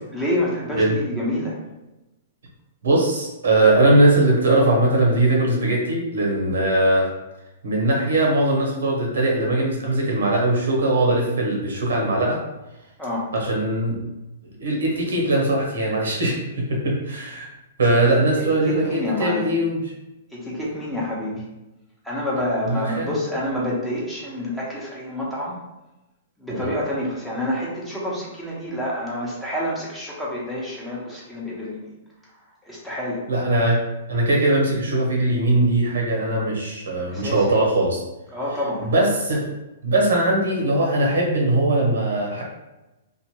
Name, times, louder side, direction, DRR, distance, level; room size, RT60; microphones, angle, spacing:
voice 1, 0.1-1.6 13.0-13.3 18.7-19.4 20.3-21.4 22.0-25.6 26.4-31.9 32.2-33.2 37.1-37.4 38.3-38.9, left 1 dB, 5° left, -6 dB, 0.8 m, -28 dB
voice 2, 2.8-7.1 7.6-12.4 13.3-14.0 14.6-17.5 17.8-19.9 22.6-23.1 26.5-26.7 33.3-33.8 34.1-38.0 38.8-39.5 39.8-42.4, right 1 dB, 90° right, -1 dB, 1.0 m, -20 dB
2.5 x 2.4 x 2.9 m, 0.98 s
hypercardioid pair, 140°, 0 cm